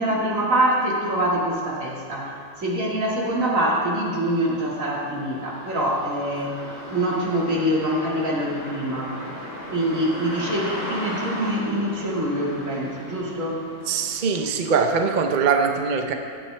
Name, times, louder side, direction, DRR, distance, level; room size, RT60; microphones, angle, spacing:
voice 1, 0.0-6.6 6.9-9.1 9.7-13.6, right 1 dB, 80° right, -4 dB, 2.5 m, -24 dB
sound 1, 1.5-1.6 2.1-14.9, equal, 80° left, 3.9 m, -37 dB
voice 2, 13.9-16.1, right 5 dB, 45° right, 5 dB, 0.7 m, -22 dB
16.5 x 11.0 x 3.3 m, 2.2 s
omnidirectional pair, 1.4 m